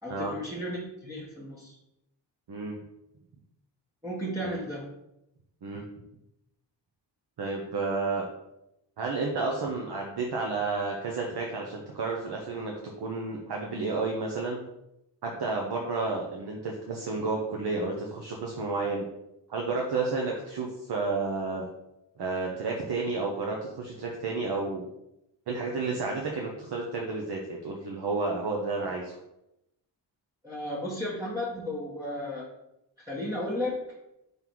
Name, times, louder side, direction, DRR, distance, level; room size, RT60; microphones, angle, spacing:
voice 1, 0.0-1.8 4.0-4.9 30.4-32.4 33.0-33.8, left 1 dB, 10° right, -7 dB, 1.2 m, -34 dB
voice 2, 7.4-8.2 9.0-14.6 15.2-19.0 19.5-21.7 22.2-24.8 25.5-29.2, right 3 dB, 60° right, -1 dB, 0.9 m, -31 dB
5.4 x 3.9 x 4.6 m, 0.86 s
wide cardioid pair, 145°, 44 cm